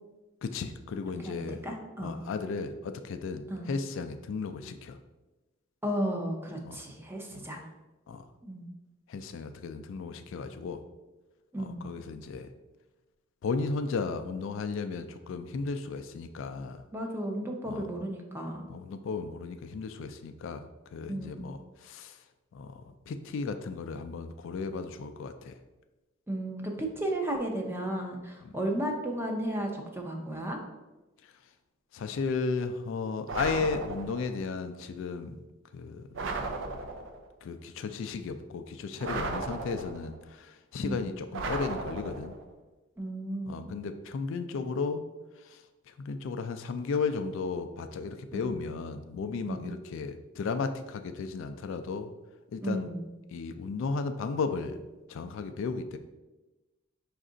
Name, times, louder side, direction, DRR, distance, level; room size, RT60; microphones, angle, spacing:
voice 1, 0.4-1.6 2.0-5.0 6.6-6.8 7.3-7.5 8.1-8.3 9.1-10.8 11.6-12.5 13.4-16.8 17.7-17.9 18.7-22.2 22.5-25.6 31.2-31.3 31.9-35.4 35.7-36.1 37.4-42.3 43.5-45.0 45.4-52.1 52.5-52.9 53.3-54.8 55.1-56.0, left 4 dB, 60° left, 8 dB, 0.3 m, -35 dB
voice 2, 1.0-2.2 3.5-3.7 5.8-7.7 8.4-8.7 11.5-11.9 16.9-18.7 21.1-21.5 26.3-30.6 40.8-41.1 43.0-43.8 48.3-48.6 49.5-49.8 52.6-53.1, right 1 dB, 10° right, 1 dB, 0.5 m, -34 dB
sound 1, 33.3-34.4 36.1-37.3 39.0-40.2 41.3-42.5, right 3 dB, 60° right, 0.5 m, -35 dB
5.2 x 2.4 x 3.8 m, 1.1 s
head